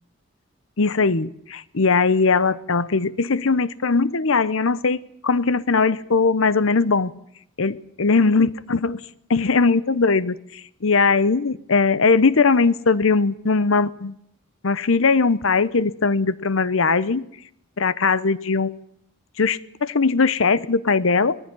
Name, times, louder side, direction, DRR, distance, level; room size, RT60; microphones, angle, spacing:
voice 1, 0.8-7.1 7.6-9.0 9.3-14.2 14.6-17.2 17.8-18.8 19.4-21.4, left 4 dB, 70° left, 17 dB, 0.8 m, -20 dB
19.5 x 15.0 x 9.8 m, 0.71 s
head